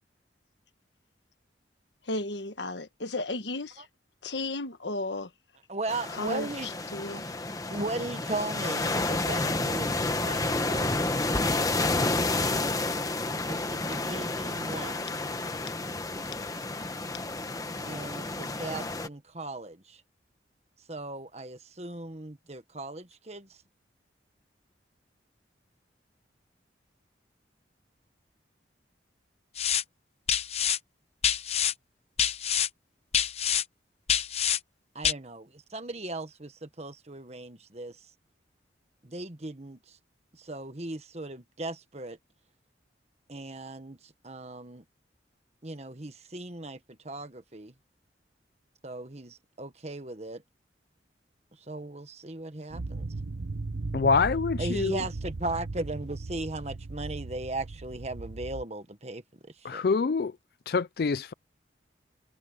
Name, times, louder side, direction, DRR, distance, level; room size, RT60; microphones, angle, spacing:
voice 1, 2.0-3.9 4.2-5.3 6.1-7.2, left 2 dB, 75° left, 1.4 m, -34 dB
voice 2, 5.7-6.7 7.7-10.9 13.5-15.2 17.8-20.0 20.9-23.5 34.9-38.0 39.0-40.0 40.3-42.2 43.3-44.8 45.6-46.8 47.0-47.7 48.8-50.4 51.7-53.1 54.6-59.8, right 2 dB, 35° right, 1.5 m, -37 dB
sound 1, 5.9-19.1, left 2 dB, 20° left, 1.1 m, -30 dB
sound 2, 29.6-29.8 30.3-30.8 31.2-31.7 32.2-32.7 33.1-33.6 34.1-34.6 35.0-35.1, left 9 dB, 35° left, 0.9 m, -26 dB
sound 3, 52.7-58.6, right 3 dB, 85° right, 0.8 m, -37 dB
voice 3, 53.9-55.0 59.6-60.3 60.7-61.3, left 4 dB, 55° left, 0.4 m, -26 dB
head